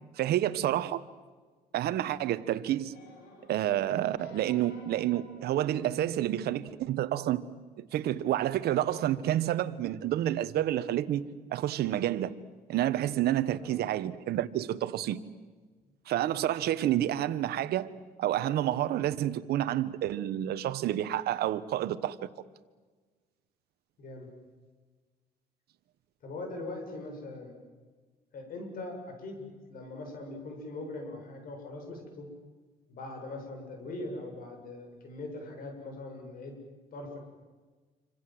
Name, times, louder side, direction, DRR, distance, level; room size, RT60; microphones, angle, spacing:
voice 1, 0.2-1.0 1.7-2.9 3.5-7.4 7.9-11.2 11.5-12.3 12.7-15.2 16.1-17.9 18.2-22.2, right 12 dB, 70° right, 1.3 m, -29 dB
sound 1, 2.8-6.3 7.0-7.1, left 4 dB, 85° left, 6.8 m, -55 dB
voice 2, 24.0-24.3 26.2-27.6 28.3-32.3 32.9-36.6 36.9-37.2, left 2 dB, 55° left, 7.9 m, -41 dB
27.5 x 26.5 x 7.9 m
cardioid pair, 110°, 17 cm